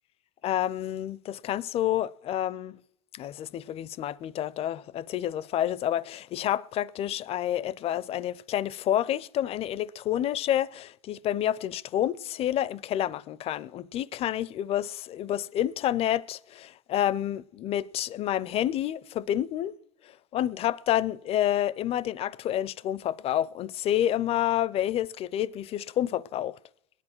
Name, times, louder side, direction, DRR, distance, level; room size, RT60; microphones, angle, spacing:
voice 1, 0.4-2.8 3.1-19.8 20.0-26.6, left 11 dB, 35° left, 0.4 m, -29 dB
18.5 x 9.9 x 6.0 m
hypercardioid pair, 95°, 17 cm